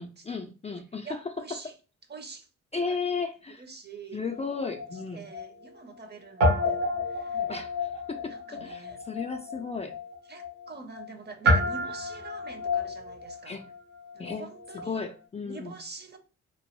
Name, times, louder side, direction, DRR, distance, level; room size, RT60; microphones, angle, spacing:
voice 1, 0.0-1.6 2.7-3.6 4.1-5.3 7.3-9.9 13.5-13.7 14.2-14.5 14.7-15.7, left 4 dB, 20° left, 0.4 m, -35 dB
voice 2, 1.0-1.7 2.1-2.5 2.9-3.2 3.6-4.2 5.1-7.5 8.3-9.0 10.3-13.6 14.1-15.0 15.4-16.2, right 4 dB, 30° right, 0.8 m, -45 dB
Guitar, 4.3-6.1 6.4-15.0, left 1 dB, 70° right, 1.3 m, -30 dB
3.0 x 2.5 x 3.0 m
hypercardioid pair, 45°, 32 cm